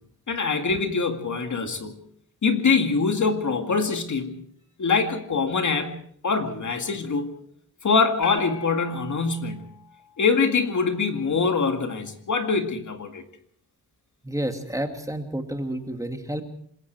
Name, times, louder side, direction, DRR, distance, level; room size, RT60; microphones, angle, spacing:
voice 1, 0.3-2.0 2.4-4.4 4.8-7.3 7.8-9.8 10.2-13.2, left 4 dB, 45° left, 6 dB, 2.2 m, -24 dB
sound 1, 8.2-10.7, left 8 dB, 80° left, 3.3 m, -42 dB
voice 2, 14.2-16.4, right 1 dB, 10° right, 5 dB, 2.2 m, -30 dB
26.0 x 21.0 x 4.7 m, 0.63 s
cardioid pair, 100°, 40 cm